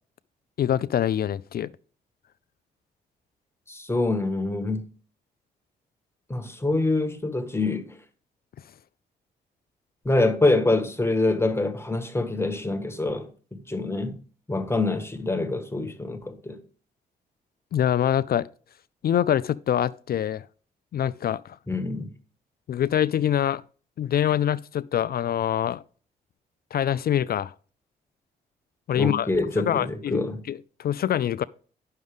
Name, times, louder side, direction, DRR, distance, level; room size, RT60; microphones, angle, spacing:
voice 1, 0.6-1.7 17.7-18.5 19.0-20.4 20.9-21.6 22.7-23.6 24.0-25.8 26.7-27.5 28.9-29.3 29.6-30.2 30.5-31.4, left 10 dB, 50° left, 0.4 m, -24 dB
voice 2, 3.7-4.9 6.3-8.0 10.0-14.1 14.5-16.6 21.7-22.1 28.9-30.4, left 2 dB, 10° left, 1.5 m, -25 dB
9.3 x 6.4 x 3.6 m
supercardioid pair, 55°, 20 cm